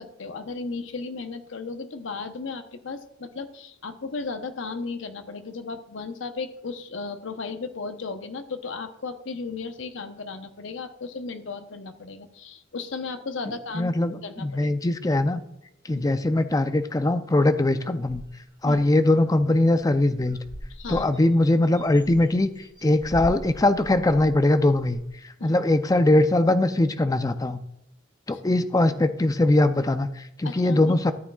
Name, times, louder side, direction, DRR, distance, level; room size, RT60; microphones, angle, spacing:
voice 1, 0.0-13.9 14.2-14.7 15.9-16.1 18.6-18.8 20.7-21.1 25.4-25.5 28.3-28.4 30.4-30.9, left 4 dB, 65° left, 8 dB, 0.8 m, -35 dB
voice 2, 13.7-15.4 15.9-18.2 18.6-20.4 20.9-22.5 22.8-25.0 25.4-27.6 28.3-31.1, left 2 dB, 15° left, 10 dB, 0.4 m, -21 dB
sound 1, 18.0-18.8 19.2-19.3 19.6-19.8 20.1-25.1, equal, 20° right, 1.0 m, -41 dB
13.5 x 8.7 x 2.3 m, 0.81 s
head